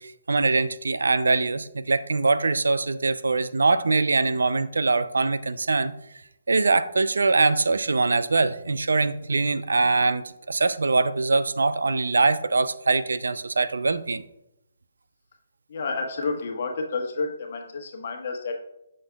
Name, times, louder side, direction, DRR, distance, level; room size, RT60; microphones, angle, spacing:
voice 1, 0.0-5.9 6.5-14.2, right 3 dB, 85° right, 14 dB, 0.4 m, -23 dB
voice 2, 15.7-18.5, left 4 dB, 50° left, 3 dB, 1.1 m, -30 dB
7.1 x 6.3 x 2.2 m, 0.84 s
hypercardioid pair, 160°, 0 cm